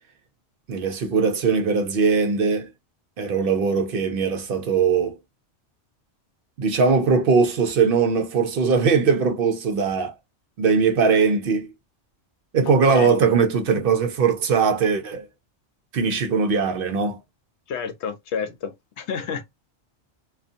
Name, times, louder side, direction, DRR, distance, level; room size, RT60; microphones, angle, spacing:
voice 1, 0.7-2.7 3.2-5.2 6.6-10.1 10.6-11.7 12.5-15.3 15.9-17.2, right 5 dB, 60° right, 0.7 m, -20 dB
voice 2, 12.7-13.2 17.7-19.4, left 6 dB, 75° left, 0.9 m, -30 dB
2.6 x 2.4 x 2.5 m
omnidirectional pair, 1.2 m